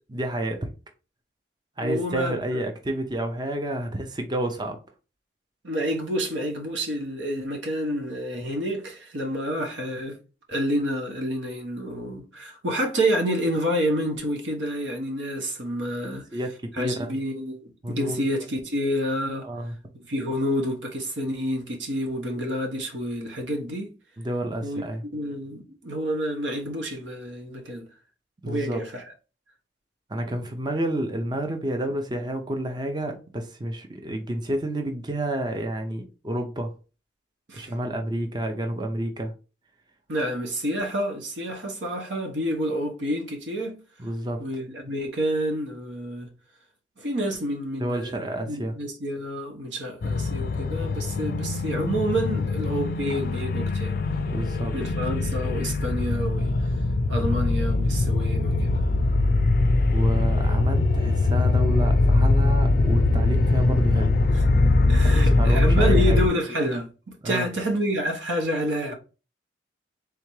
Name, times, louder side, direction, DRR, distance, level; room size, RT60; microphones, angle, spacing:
voice 1, 0.1-0.7 1.8-4.8 16.0-17.2 17.8-18.2 19.4-19.7 24.2-25.0 28.4-28.8 30.1-36.7 37.5-39.3 44.0-44.4 47.8-48.7 54.3-54.7 59.9-64.1 65.2-66.2 67.2-67.5, right 1 dB, 25° right, 0.5 m, -30 dB
voice 2, 1.8-2.6 5.6-10.2 10.5-16.2 16.8-19.5 20.1-23.9 24.6-27.8 28.4-29.0 37.5-37.7 40.1-43.8 44.4-46.3 47.0-54.0 54.7-56.5 57.1-58.7 64.5-66.9 67.2-68.9, equal, 85° right, 1.1 m, -28 dB
sound 1, 50.0-66.3, left 2 dB, 50° left, 0.4 m, -22 dB
3.7 x 3.4 x 3.1 m
head